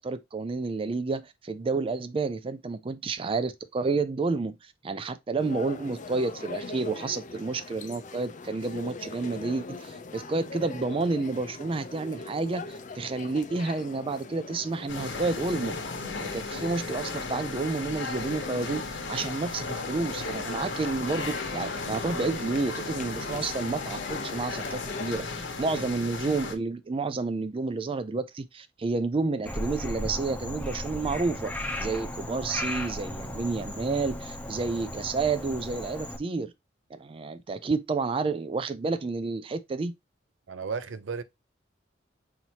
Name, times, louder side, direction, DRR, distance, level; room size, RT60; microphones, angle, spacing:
voice 1, 0.0-12.7 12.9-15.8 16.2-18.8 19.1-25.3 25.6-31.5 31.8-36.5 36.9-39.9, right 3 dB, 30° right, 0.4 m, -30 dB
sound 1, 5.4-25.2, left 4 dB, 40° left, 0.6 m, -42 dB
sound 2, 14.9-26.6, left 3 dB, 75° left, 1.2 m, -35 dB
Frog, 29.5-36.2, left 1 dB, 5° left, 0.8 m, -35 dB
voice 2, 40.5-41.2, right 5 dB, 80° right, 0.6 m, -34 dB
5.7 x 2.8 x 2.9 m
head